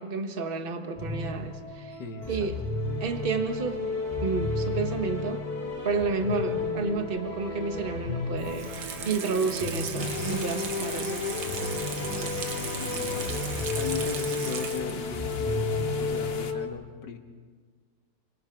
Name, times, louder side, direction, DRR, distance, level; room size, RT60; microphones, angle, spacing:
voice 1, 0.0-2.0 2.3-2.6 3.0-3.9 4.2-5.5 5.8-8.7 9.0-11.3, right 4 dB, 30° right, 6 dB, 1.5 m, -31 dB
sound 1, 1.0-16.7, left 3 dB, 20° left, 3.0 m, -32 dB
voice 2, 2.0-2.5 9.4-9.8 12.8-15.7 16.0-17.2, left 4 dB, 65° left, 4 dB, 2.4 m, -39 dB
Water tap faucet / Sink (filling or washing), 8.4-15.1 15.5-15.6, right 6 dB, 75° right, 2.0 m, -37 dB
sound 2, 10.0-16.5, left 6 dB, 45° left, 0.8 m, -40 dB
29.0 x 23.5 x 4.7 m, 1.5 s
omnidirectional pair, 2.1 m